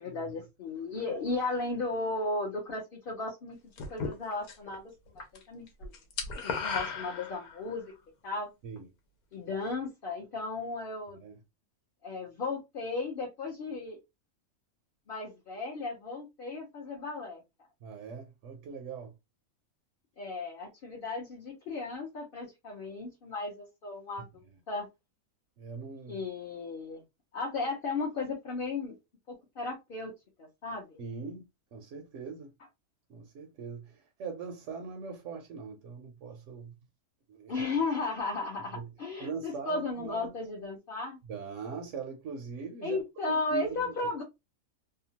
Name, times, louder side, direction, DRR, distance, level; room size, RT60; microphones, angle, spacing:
voice 1, 0.0-3.6 3.9-4.8 5.1-5.9 6.4-7.8 8.2-8.5 9.3-11.2 12.0-14.0 15.1-17.4 20.2-24.3 24.7-24.9 26.1-27.0 27.3-29.0 29.3-30.1 30.4-31.0 37.5-41.2 42.8-44.2, left 3 dB, 50° left, 0.8 m, -35 dB
sound 1, 3.8-4.8 5.1-5.4 5.7-7.8, left 5 dB, 85° left, 1.2 m, -35 dB
voice 2, 11.1-11.4 17.8-19.1 25.6-26.2 31.0-32.5 33.1-36.7 37.3-37.7 38.7-38.9 39.2-40.3 41.2-43.0 43.3-44.1, right 4 dB, 65° right, 0.9 m, -41 dB
2.8 x 2.2 x 2.8 m
omnidirectional pair, 1.5 m